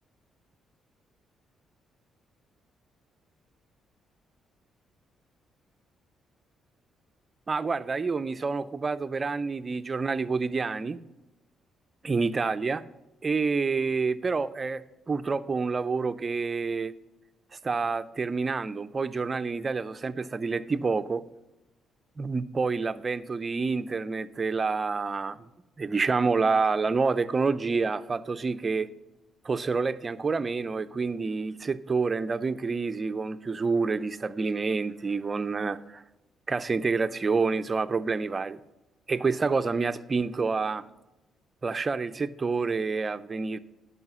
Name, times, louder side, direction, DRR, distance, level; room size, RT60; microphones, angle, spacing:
voice 1, 7.5-11.0 12.0-12.8 13.2-14.8 15.1-16.9 17.6-21.2 22.2-25.4 25.8-28.9 29.4-36.0 36.5-38.6 39.1-40.8 41.6-43.6, right 4 dB, 30° right, 12 dB, 0.5 m, -28 dB
11.0 x 5.6 x 6.0 m, 0.98 s
cardioid pair, 90°, 0 cm